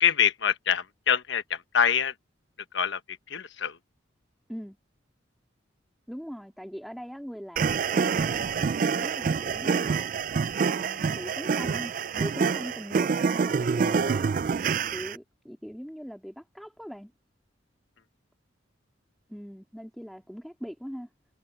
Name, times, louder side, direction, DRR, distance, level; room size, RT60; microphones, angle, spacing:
voice 1, 0.0-2.1 2.7-3.0 3.3-3.8, left 8 dB, 70° left, 1.1 m, -25 dB
voice 2, 6.1-10.1 10.6-11.9 12.2-14.4 14.9-17.1 19.3-21.1, equal, ahead, 2.4 m, -41 dB
sound 1, 7.6-15.2, right 5 dB, 45° right, 0.3 m, -26 dB
head